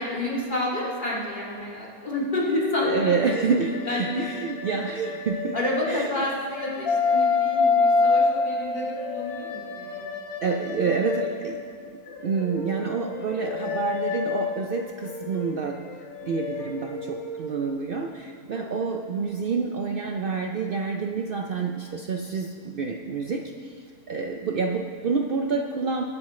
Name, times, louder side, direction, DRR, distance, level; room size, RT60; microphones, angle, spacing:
voice 1, 0.0-3.3 3.9-4.2 5.5-10.1 10.4-10.9 11.2-11.3 13.3-13.6 18.5-18.7, left 1 dB, 30° left, -6 dB, 2.4 m, -30 dB
sound 1, 2.4-6.0 6.4-11.6 12.1-17.6, left 4 dB, 70° left, 1.5 m, -28 dB
voice 2, 2.8-5.6 5.9-6.1 10.4-11.6 12.2-15.8 16.2-23.4 24.1-26.0, right 5 dB, 80° right, 3 dB, 0.5 m, -28 dB
21.0 x 7.7 x 3.2 m, 2.2 s
omnidirectional pair, 1.6 m